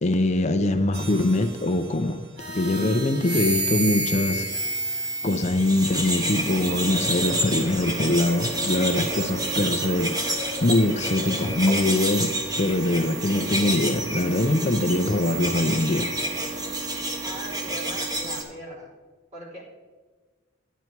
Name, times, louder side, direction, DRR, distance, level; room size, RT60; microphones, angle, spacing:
voice 1, 0.0-2.2 2.5-4.5 4.9-16.1, left 2 dB, 35° left, 7 dB, 0.5 m, -23 dB
sound 1, 0.9-1.9 2.4-6.0, right 2 dB, 60° right, 1.6 m, -30 dB
sound 2, 5.2-18.4, right 1 dB, 20° right, 1.3 m, -29 dB
sound 3, 6.8-12.3, left 2 dB, 80° right, 1.8 m, -40 dB
voice 2, 17.2-18.9 19.3-19.6, equal, 35° right, -5 dB, 3.8 m, -39 dB
11.0 x 9.3 x 4.5 m, 1.4 s
head